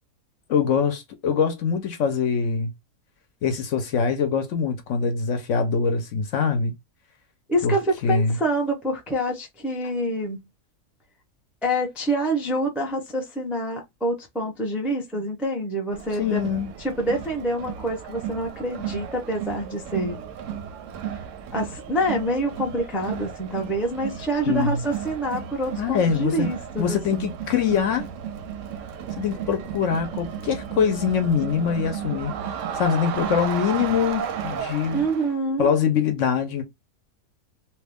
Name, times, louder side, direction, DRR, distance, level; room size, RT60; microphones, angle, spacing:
voice 1, 0.5-2.7 3.4-6.7 7.6-7.8 8.0-8.4 16.2-16.7 24.5-24.8 25.8-26.5 26.8-28.1 29.2-32.3 32.7-35.0 35.6-36.6, left 6 dB, 65° left, 0.9 m, -23 dB
voice 2, 7.5-10.4 11.6-16.5 16.8-20.2 21.5-27.3 34.9-35.7, right 1 dB, ahead, 0.4 m, -26 dB
Crowd, 15.9-35.3, right 8 dB, 65° right, 0.8 m, -34 dB
3.0 x 2.2 x 3.4 m
omnidirectional pair, 1.6 m